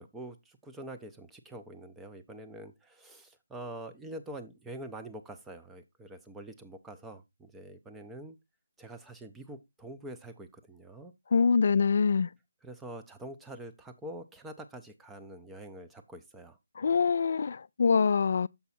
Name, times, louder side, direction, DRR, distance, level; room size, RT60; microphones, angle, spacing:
voice 1, 0.0-8.4 8.8-11.1 12.6-17.1, right 1 dB, 5° right, 0.5 m, -45 dB
voice 2, 11.3-12.3 16.8-18.5, left 5 dB, 50° left, 0.3 m, -24 dB
7.0 x 4.6 x 4.2 m
hypercardioid pair, 165°, 0 cm